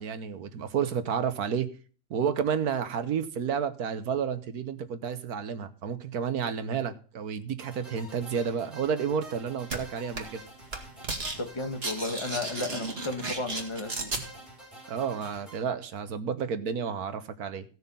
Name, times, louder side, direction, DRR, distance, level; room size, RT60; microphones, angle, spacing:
voice 1, 0.0-1.7 2.1-10.4 14.9-17.6, right 7 dB, 85° right, 1.6 m, -31 dB
sound 1, 7.6-15.6, right 1 dB, ahead, 4.8 m, -48 dB
sound 2, 9.7-9.8 10.2-10.4 10.7-11.4 11.6-14.2, right 3 dB, 40° right, 2.2 m, -33 dB
voice 2, 11.4-14.1, left 2 dB, 20° left, 1.4 m, -33 dB
16.5 x 6.4 x 5.5 m
omnidirectional pair, 1.6 m